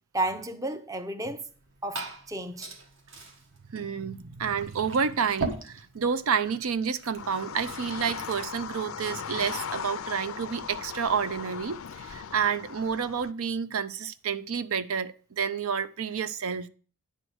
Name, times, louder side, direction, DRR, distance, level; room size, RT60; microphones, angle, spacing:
voice 1, 0.1-1.5 1.8-2.8, right 2 dB, 15° right, 0.5 m, -32 dB
Liquid, 1.4-8.5, right 3 dB, 60° right, 1.6 m, -41 dB
voice 2, 3.7-16.7, right 6 dB, 80° right, 0.6 m, -29 dB
sound 1, 7.2-13.3, left 7 dB, 70° left, 0.5 m, -38 dB
9.9 x 4.6 x 6.3 m
head